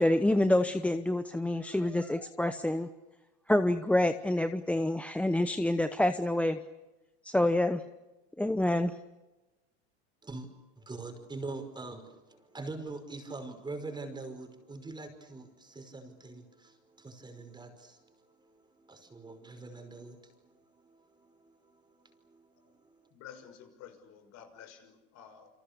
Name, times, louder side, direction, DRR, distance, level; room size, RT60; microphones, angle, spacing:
voice 1, 0.0-2.9 3.5-6.6 7.2-7.8 8.4-8.9, left 1 dB, 5° left, 10 dB, 0.9 m, -27 dB
voice 2, 10.8-23.1, right 3 dB, 15° right, 5 dB, 5.3 m, -44 dB
voice 3, 23.1-25.5, left 8 dB, 55° left, 7 dB, 6.2 m, -51 dB
29.0 x 26.0 x 6.9 m, 1.1 s
supercardioid pair, 120°, 33 cm